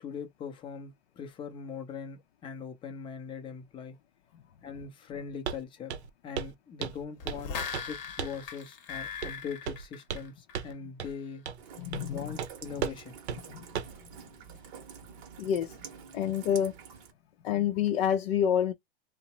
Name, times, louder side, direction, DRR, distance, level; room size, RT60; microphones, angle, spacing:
voice 1, 0.0-4.0 4.6-5.9 6.2-11.4 12.1-13.1, left 6 dB, 15° left, 0.5 m, -41 dB
Walk footsteps, 5.5-5.6 5.9-6.1 6.4-6.5 6.8-7.5 7.7-7.9 8.2-8.4 9.2-9.4 9.7-10.3 10.5-10.7 11.0-11.1 11.5-11.6 11.9-12.1 12.4-12.5 12.8-13.0 13.3-13.4 13.8-14.0, right 7 dB, 90° right, 0.6 m, -35 dB
sound 1, 7.2-10.7 11.1-11.2, left 6 dB, 35° left, 0.9 m, -39 dB
Rain, 11.6-17.1, right 7 dB, 35° right, 0.8 m, -48 dB
voice 2, 11.8-12.4 12.8-12.9 13.5-13.7 15.4-15.8 16.1-16.7 17.4-18.7, left 9 dB, 65° left, 0.6 m, -28 dB
2.8 x 2.1 x 2.8 m
hypercardioid pair, 140°, 32 cm